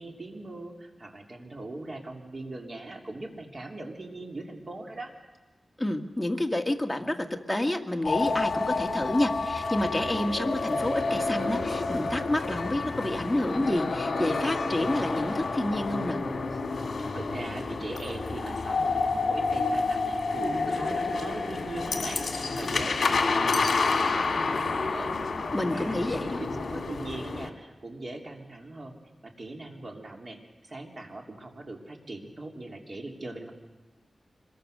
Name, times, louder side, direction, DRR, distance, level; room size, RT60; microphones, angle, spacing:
voice 1, 0.0-5.1 16.5-16.6 17.1-25.1 25.7-28.9 29.2-33.5, right 2 dB, 40° right, 2 dB, 3.1 m, -40 dB
voice 2, 5.8-16.2 25.5-26.4, left 1 dB, 10° left, 4 dB, 1.7 m, -29 dB
sound 1, 8.0-27.5, left 3 dB, 65° left, 2.2 m, -29 dB
25.5 x 22.0 x 6.6 m, 1.2 s
wide cardioid pair, 105°, 0 cm